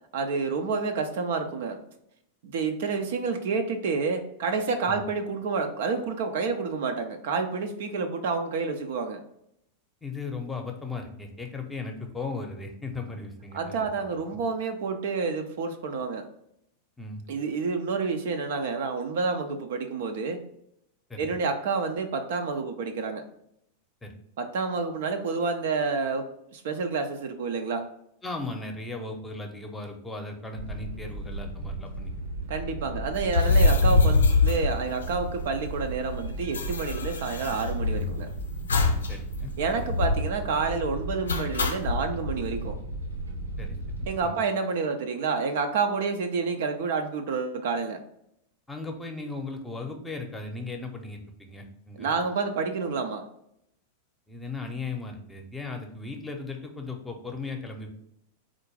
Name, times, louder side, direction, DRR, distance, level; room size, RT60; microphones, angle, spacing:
voice 1, 0.1-1.8 2.4-9.2 13.5-16.3 17.3-20.4 21.2-23.2 24.4-26.3 26.5-27.9 32.5-38.3 39.6-42.8 44.1-48.0 51.9-53.3, right 4 dB, 55° right, 6 dB, 0.5 m, -29 dB
voice 2, 10.0-14.0 17.0-17.2 21.1-21.4 24.0-24.2 28.2-32.1 32.9-33.0 39.1-39.5 39.8-39.9 43.6-44.3 48.7-52.1 54.3-57.9, left 3 dB, 10° left, 3 dB, 0.8 m, -37 dB
sound 1, 30.5-44.1, right 2 dB, 90° right, 0.9 m, -35 dB
sound 2, 33.2-35.5 35.8-35.9 36.1-38.2 38.7-39.1 39.4-39.5 39.9-40.4 41.3-42.0, left 3 dB, 70° left, 0.5 m, -23 dB
4.4 x 2.5 x 4.8 m, 0.76 s
figure-of-eight pair, 90°, 0 cm